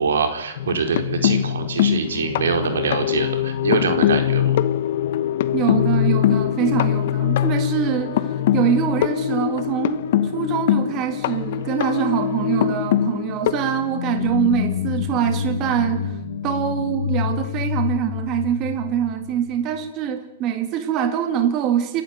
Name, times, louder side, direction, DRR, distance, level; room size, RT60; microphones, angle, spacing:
voice 1, 0.0-4.6, right 5 dB, 85° right, 5 dB, 4.7 m, -24 dB
sound 1, 0.6-14.5 15.8-15.9 16.2-16.4, left 11 dB, 50° left, 1.1 m, -22 dB
voice 2, 5.5-10.0 10.3-16.2 16.4-22.0, right 10 dB, 30° right, 7 dB, 2.0 m, -24 dB
sound 2, 13.8-19.9, left 8 dB, 80° left, 1.6 m, -27 dB
28.0 x 11.5 x 9.3 m, 0.96 s
hypercardioid pair, 155°, 0 cm